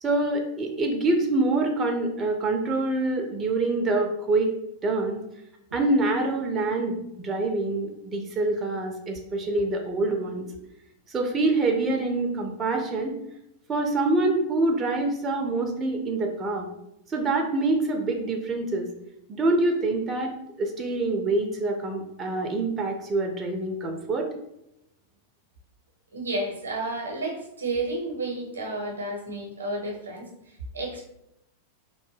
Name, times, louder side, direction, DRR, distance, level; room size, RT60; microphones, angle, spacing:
voice 1, 0.0-4.5 4.8-5.2 5.7-10.4 11.1-13.1 13.7-16.7 17.1-18.9 19.3-24.3, right 2 dB, 20° right, 2 dB, 0.4 m, -26 dB
voice 2, 26.1-31.0, right 2 dB, 75° right, 1 dB, 0.6 m, -31 dB
3.0 x 2.1 x 3.1 m, 0.84 s
figure-of-eight pair, 90°, 0 cm